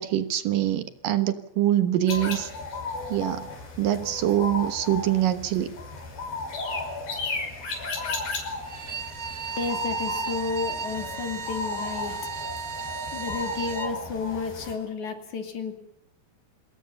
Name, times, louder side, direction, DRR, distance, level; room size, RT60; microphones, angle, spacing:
voice 1, 0.0-2.5 3.1-3.5 3.8-5.7, right 12 dB, 70° right, 11 dB, 2.7 m, -24 dB
sound 1, 2.1-14.7, left 3 dB, 75° left, 7.4 m, -35 dB
Bowed string instrument, 8.6-13.9, right 5 dB, 40° right, 1.2 m, -34 dB
voice 2, 9.6-12.3 13.1-15.7, left 4 dB, 55° left, 6 dB, 4.1 m, -32 dB
26.0 x 20.0 x 6.9 m, 0.80 s
omnidirectional pair, 4.3 m